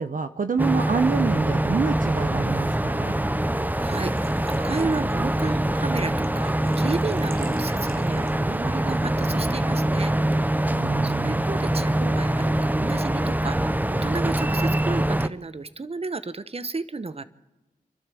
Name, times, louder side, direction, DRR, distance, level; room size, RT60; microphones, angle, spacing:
voice 1, 0.0-3.2 10.7-11.4, right 5 dB, 65° right, 10 dB, 0.8 m, -27 dB
sound 1, 0.6-15.3, right 1 dB, 10° right, 0.8 m, -24 dB
voice 2, 3.8-10.1 11.0-17.2, right 3 dB, 40° right, 14 dB, 1.0 m, -32 dB
Engine / Trickle dribble / Fill (with liquid), 3.8-8.6, right 4 dB, 80° right, 1.4 m, -48 dB
27.5 x 12.0 x 7.7 m, 1.0 s
cardioid pair, 60°, 15 cm